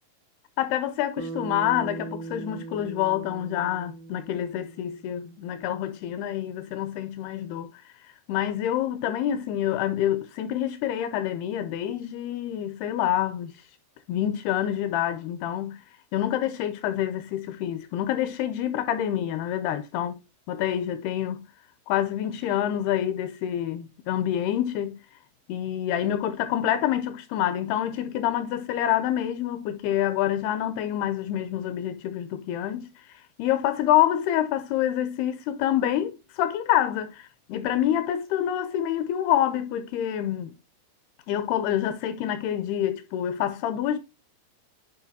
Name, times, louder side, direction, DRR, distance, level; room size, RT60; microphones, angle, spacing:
voice 1, 0.6-7.7 8.3-13.5 14.1-15.8 16.1-20.1 20.5-21.5 21.9-25.0 25.5-32.9 33.4-40.6 41.3-44.0, left 11 dB, 80° left, 2.4 m, -27 dB
Bass guitar, 1.2-5.6, right 4 dB, 80° right, 2.2 m, -39 dB
10.5 x 4.4 x 2.7 m
omnidirectional pair, 4.8 m